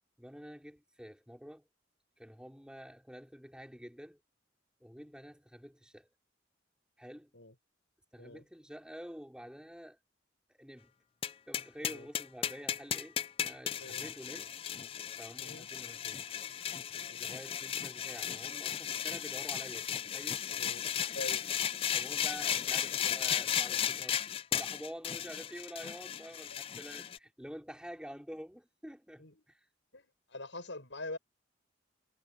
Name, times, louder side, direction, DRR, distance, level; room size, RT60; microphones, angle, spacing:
voice 1, 0.2-1.6 2.2-4.2 4.8-6.1 7.0-7.3 8.1-10.0 10.5-10.9 11.5-14.6 15.2-16.2 17.2-20.4 21.9-24.2 24.5-29.7, equal, 5° right, 5.1 m, -48 dB
sound 1, 11.2-27.2, left 9 dB, 30° left, 0.3 m, -35 dB
voice 2, 21.1-21.4 26.5-26.6 29.2-29.4 29.9-31.2, left 2 dB, 75° left, 7.2 m, -44 dB
head